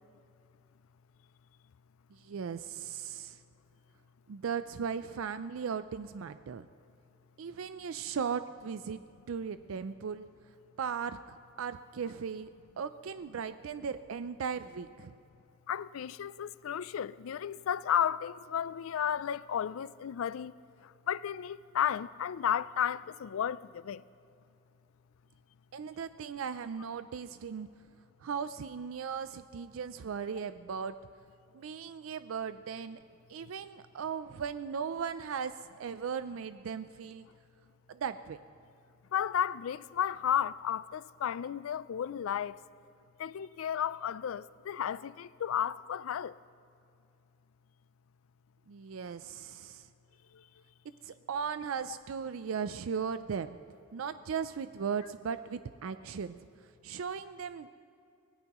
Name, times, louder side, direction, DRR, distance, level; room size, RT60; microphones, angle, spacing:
voice 1, 2.1-3.4 4.3-6.7 7.4-10.3 10.8-11.2 11.6-12.5 12.8-15.1 25.7-27.7 28.2-30.9 31.5-33.0 33.3-37.3 37.9-38.4 48.7-49.9 51.0-53.6 53.9-56.4 56.8-57.7, right 6 dB, 80° right, 0.4 m, -37 dB
voice 2, 15.7-20.5 20.8-24.0 39.1-42.6 43.2-46.4 50.3-50.4, left 9 dB, 90° left, 0.4 m, -33 dB
24.0 x 18.0 x 3.0 m
head